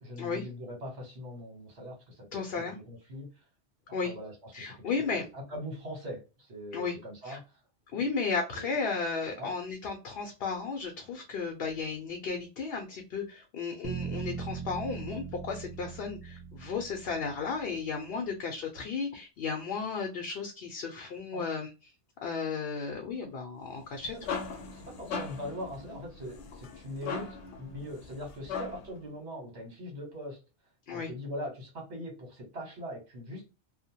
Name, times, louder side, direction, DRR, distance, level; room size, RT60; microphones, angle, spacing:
voice 1, 0.0-3.4 4.0-7.6 8.5-8.7 9.4-9.5 21.3-21.4 24.7-27.3 27.6-30.4 30.9-33.4, equal, 75° right, 0 dB, 1.5 m, -41 dB
voice 2, 2.3-2.8 3.9-4.1 4.5-5.2 6.7-7.0 7.2-7.4 7.9-21.7 22.2-24.2 30.9-31.1, left 5 dB, 65° left, 3 dB, 0.8 m, -34 dB
sound 1, 13.8-17.9, right 6 dB, 40° right, 0.4 m, -40 dB
sound 2, 23.8-29.0, left 5 dB, 90° left, 0.9 m, -39 dB
2.8 x 2.1 x 2.7 m, 0.30 s
omnidirectional pair, 1.1 m